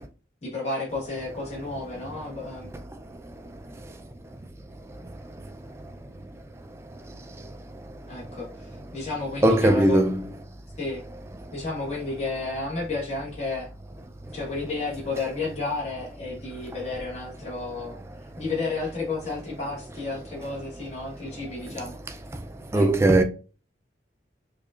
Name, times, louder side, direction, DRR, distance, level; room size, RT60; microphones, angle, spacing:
voice 1, 0.4-2.7 8.1-10.0 10.8-11.0 11.5-13.7 14.3-17.9 18.4-22.0 22.7-22.9, left 3 dB, 35° left, 1.3 m, -32 dB
voice 2, 9.4-10.2 22.7-23.2, right 1 dB, 15° right, 0.3 m, -18 dB
4.9 x 2.4 x 2.4 m
head